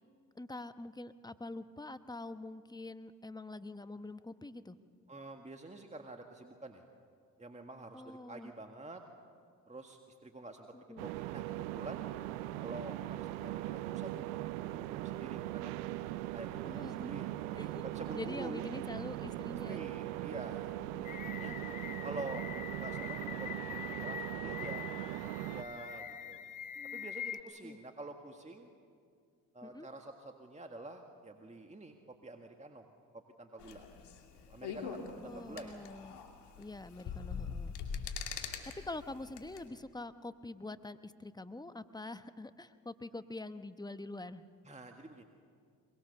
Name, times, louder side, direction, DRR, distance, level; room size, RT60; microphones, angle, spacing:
voice 1, 0.3-4.8 7.9-8.5 10.7-11.1 16.6-17.1 17.5-19.9 20.9-21.1 26.7-27.1 27.6-27.8 29.6-29.9 35.2-36.2 36.6-37.7 38.6-44.5, left 2 dB, 10° left, 11 dB, 1.0 m, -45 dB
voice 2, 5.1-6.8 7.4-9.0 9.7-12.0 12.6-14.3 14.6-15.8 16.3-18.6 19.6-21.6 22.0-22.4 22.8-24.9 25.1-26.4 26.9-28.7 29.5-32.0 32.2-32.8 33.1-33.9 34.5-35.8 44.7-45.2, right 2 dB, 15° right, 4 dB, 1.8 m, -48 dB
sound 1, 11.0-25.6, right 15 dB, 90° right, 0.6 m, -40 dB
sound 2, 21.0-27.4, left 9 dB, 50° left, 1.3 m, -44 dB
sound 3, 33.6-39.6, left 6 dB, 70° left, 2.5 m, -43 dB
22.5 x 22.5 x 6.9 m, 2.2 s
hypercardioid pair, 55°, 41 cm